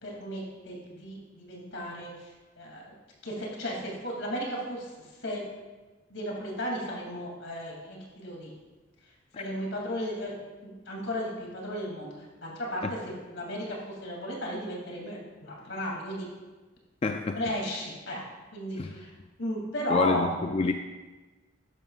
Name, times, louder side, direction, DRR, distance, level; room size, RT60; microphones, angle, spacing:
voice 1, 0.0-3.0 3.2-5.4 6.1-8.5 9.4-10.3 10.6-16.3 17.3-18.2 18.5-19.1 19.4-20.3, equal, 75° left, -2 dB, 2.8 m, -35 dB
voice 2, 17.0-17.4 18.8-18.9 19.9-20.7, left 3 dB, 30° left, 5 dB, 0.4 m, -28 dB
12.5 x 10.5 x 2.5 m, 1.2 s
head